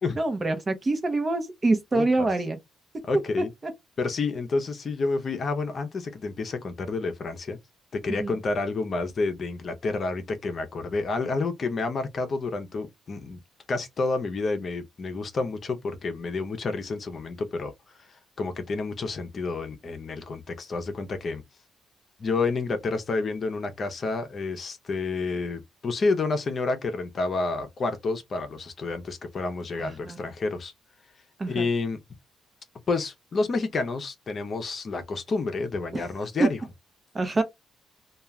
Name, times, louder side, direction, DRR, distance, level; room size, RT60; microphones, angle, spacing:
voice 1, 0.2-2.6 8.2-8.3 29.8-30.2 31.4-31.7 35.9-36.0 37.1-37.4, right 2 dB, 30° right, 0.8 m, -26 dB
voice 2, 1.9-2.3 3.1-3.5 4.0-7.6 7.9-13.4 13.7-17.7 18.4-21.4 22.2-30.7 31.5-32.0 32.9-36.6, left 3 dB, 45° left, 0.6 m, -29 dB
2.3 x 2.3 x 3.0 m
cardioid pair, 90°, 0 cm